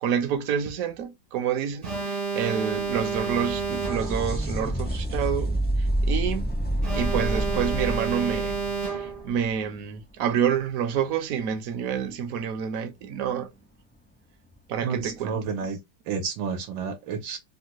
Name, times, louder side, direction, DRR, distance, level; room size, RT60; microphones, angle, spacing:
voice 1, 0.0-6.5 6.9-8.6 8.8-13.5 14.7-15.4, right 8 dB, 65° right, 0.9 m, -28 dB
Alarm, 1.8-4.4 6.8-9.4, right 4 dB, 40° right, 0.5 m, -30 dB
sound 1, 2.4-10.0 13.4-13.5 14.5-14.6, right 1 dB, 10° left, 0.5 m, -29 dB
voice 2, 14.8-15.8 16.1-17.4, right 6 dB, 85° right, 1.5 m, -30 dB
3.6 x 2.2 x 2.9 m
omnidirectional pair, 2.0 m